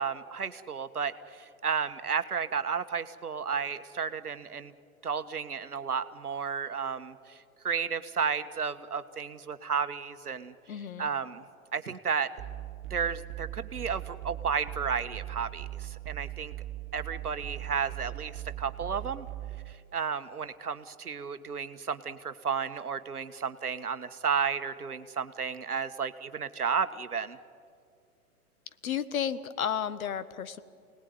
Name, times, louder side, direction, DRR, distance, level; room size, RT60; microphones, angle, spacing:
voice 1, 0.0-4.7 5.0-10.5 11.0-11.4 11.7-12.3 12.9-16.5 16.9-19.3 19.7-27.4, right 6 dB, 85° right, 10 dB, 1.5 m, -33 dB
voice 2, 10.7-11.1 28.8-30.6, left 8 dB, 65° left, 14 dB, 1.5 m, -32 dB
sound 1, 12.4-19.7, right 15 dB, 35° right, 1.0 m, -40 dB
28.5 x 19.0 x 9.5 m, 2.4 s
figure-of-eight pair, 110°, 44 cm